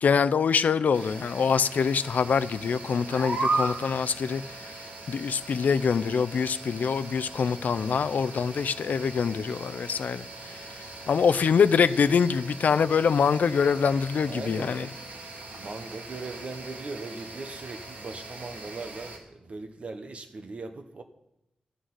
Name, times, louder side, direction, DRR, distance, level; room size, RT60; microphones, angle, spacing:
voice 1, 0.0-4.4 5.1-10.2 11.1-14.9, left 6 dB, 80° left, 13 dB, 0.5 m, -24 dB
sound 1, 0.9-19.2, right 2 dB, 80° right, 2.4 m, -38 dB
voice 2, 14.2-15.1 15.5-21.0, right 3 dB, 50° right, 7 dB, 1.2 m, -39 dB
13.5 x 6.5 x 9.5 m, 0.85 s
wide cardioid pair, 160°, 3 cm